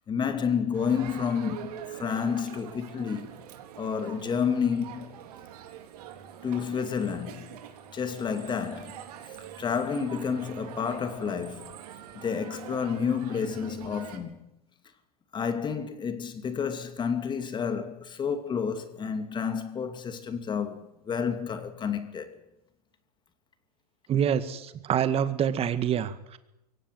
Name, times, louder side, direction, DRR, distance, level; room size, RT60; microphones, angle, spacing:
voice 1, 0.1-3.3 3.8-5.1 6.4-7.5 7.9-9.0 9.6-11.8 12.1-14.4 15.3-22.4, left 6 dB, 20° left, 2.6 m, -30 dB
Crowd, 0.7-14.2, right 10 dB, 65° right, 4.0 m, -44 dB
voice 2, 24.1-26.4, right 9 dB, 30° right, 2.0 m, -26 dB
23.0 x 17.0 x 9.4 m
hypercardioid pair, 125°, 21 cm